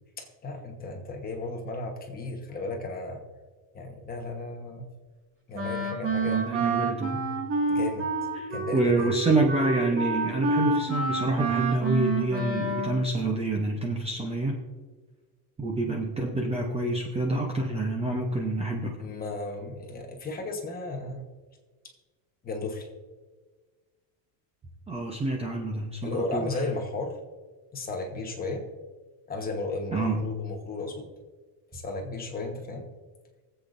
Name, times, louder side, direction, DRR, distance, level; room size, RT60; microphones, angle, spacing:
voice 1, 0.2-3.2 3.7-4.9 5.5-6.4 7.7-8.1 8.5-9.1 19.0-21.3 22.4-22.9 26.0-27.2 27.7-28.6 29.3-31.1 31.7-32.9, left 2 dB, 20° left, 2 dB, 1.2 m, -34 dB
Wind instrument woodwind instrument, 5.5-13.1, right 3 dB, 30° right, 2.1 m, -28 dB
voice 2, 6.3-7.3 8.4-14.6 15.6-19.0 24.9-26.6 29.9-30.4, right 2 dB, 15° right, 1 dB, 0.8 m, -27 dB
23.5 x 8.1 x 2.6 m, 1.4 s
cardioid pair, 165°, 45 cm